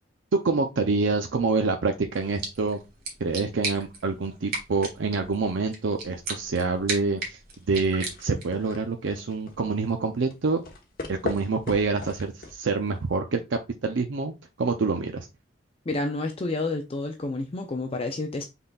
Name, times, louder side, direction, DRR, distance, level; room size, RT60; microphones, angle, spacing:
voice 1, 0.3-2.8 3.2-7.4 7.7-10.6 11.1-14.3 14.6-15.3, right 4 dB, 75° right, 0.5 m, -26 dB
sound 1, 2.1-8.6, right 3 dB, 55° right, 1.6 m, -37 dB
sound 2, 7.5-13.1, left 2 dB, 50° left, 1.1 m, -40 dB
voice 2, 15.9-18.4, left 2 dB, 30° left, 0.5 m, -29 dB
5.5 x 3.9 x 2.3 m
head